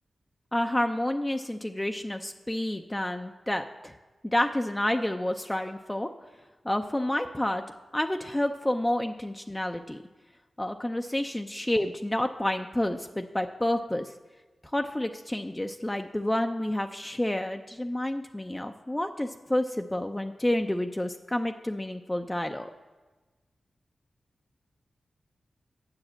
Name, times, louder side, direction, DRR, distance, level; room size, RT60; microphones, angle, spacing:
voice 1, 0.5-3.9 4.2-6.1 6.6-7.6 7.9-10.0 10.6-14.1 14.7-22.7, left 1 dB, 15° left, 5 dB, 0.5 m, -29 dB
8.5 x 5.0 x 7.5 m, 1.2 s
cardioid pair, 40°, 0 cm